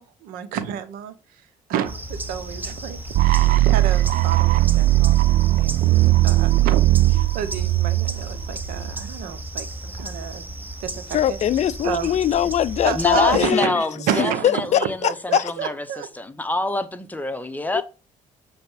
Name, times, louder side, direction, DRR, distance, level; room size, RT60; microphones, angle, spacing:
voice 1, 0.0-10.5 10.8-11.4 11.8-12.1 12.8-13.7 14.1-14.6 15.0-16.1, right 9 dB, 90° right, 0.9 m, -30 dB
sound 1, 1.8-13.5, right 1 dB, 15° right, 1.1 m, -35 dB
sound 2, 3.1-9.1, right 16 dB, 70° right, 0.4 m, -18 dB
voice 2, 11.1-13.8 14.4-15.4 17.7-17.8, left 10 dB, 50° left, 0.4 m, -21 dB
voice 3, 12.9-15.0 15.4-15.8 16.2-17.8, left 2 dB, 10° left, 0.9 m, -26 dB
7.2 x 3.5 x 6.2 m
cardioid pair, 80°, 14 cm